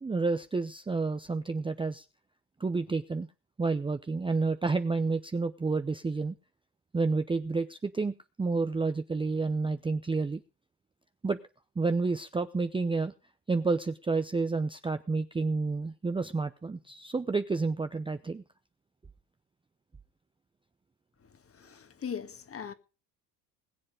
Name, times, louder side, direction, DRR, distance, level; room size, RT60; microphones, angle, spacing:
voice 1, 0.0-2.1 2.6-3.3 3.6-6.3 6.9-10.4 11.2-11.4 11.8-13.1 13.5-18.4, right 3 dB, 10° right, 0.7 m, -30 dB
voice 2, 21.2-22.7, left 7 dB, 30° left, 1.8 m, -40 dB
20.5 x 7.7 x 5.1 m
hypercardioid pair, 75°, 48 cm